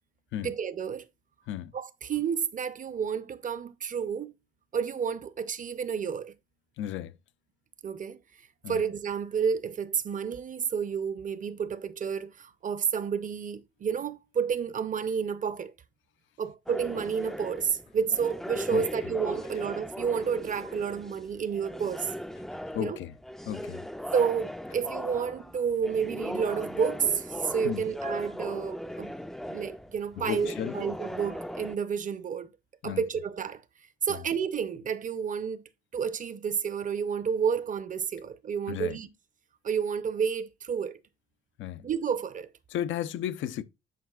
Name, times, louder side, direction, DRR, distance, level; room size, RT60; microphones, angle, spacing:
voice 1, 0.4-1.1 1.7-4.3 4.7-6.3 7.8-8.2 8.7-15.7 16.4-22.1 22.8-23.0 24.1-29.1 29.5-32.5 32.8-33.6 34.0-35.6 35.9-39.1 39.6-41.0 41.8-42.5, right 7 dB, 40° right, 0.6 m, -30 dB
voice 2, 6.8-7.2 8.6-8.8 18.7-18.9 22.7-23.1 23.4-23.9 27.6-27.8 30.2-30.7 32.8-33.0 34.1-34.2 38.7-39.0 41.6-41.9 42.7-43.6, left 11 dB, 75° left, 0.5 m, -34 dB
sound 1, 16.7-31.8, equal, ahead, 0.4 m, -38 dB
9.4 x 4.6 x 2.3 m
cardioid pair, 90°, 20 cm